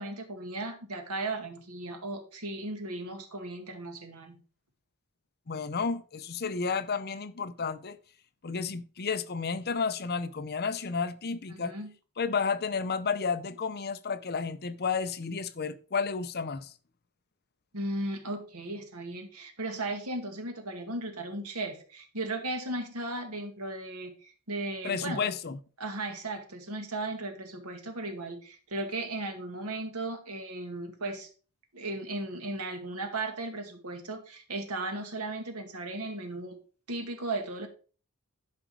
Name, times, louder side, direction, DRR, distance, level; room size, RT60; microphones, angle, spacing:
voice 1, 0.0-4.4 11.5-11.9 17.7-25.3 25.8-31.3 31.7-36.6 36.9-37.7, right 2 dB, 90° right, 2.1 m, -36 dB
voice 2, 5.5-8.0 8.4-11.7 12.2-16.7 24.8-25.6, left 5 dB, 45° left, 0.7 m, -32 dB
11.5 x 5.2 x 4.7 m
head